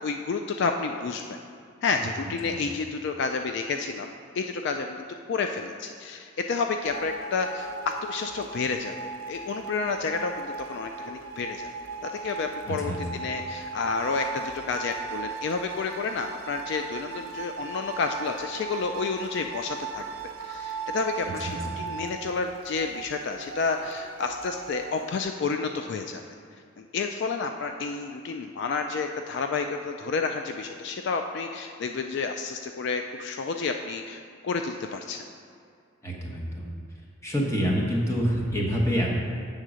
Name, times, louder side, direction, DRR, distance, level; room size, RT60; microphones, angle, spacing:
voice 1, 0.0-1.4 1.8-4.1 4.4-11.7 12.1-20.0 20.4-26.2 26.8-35.2, left 4 dB, 55° left, 5 dB, 0.3 m, -30 dB
sound 1, 6.8-25.2, right 4 dB, 80° right, 0.6 m, -38 dB
voice 2, 21.4-21.8 36.0-36.7 37.2-39.1, equal, 15° left, -3 dB, 1.0 m, -27 dB
7.9 x 3.7 x 6.2 m, 2.3 s
head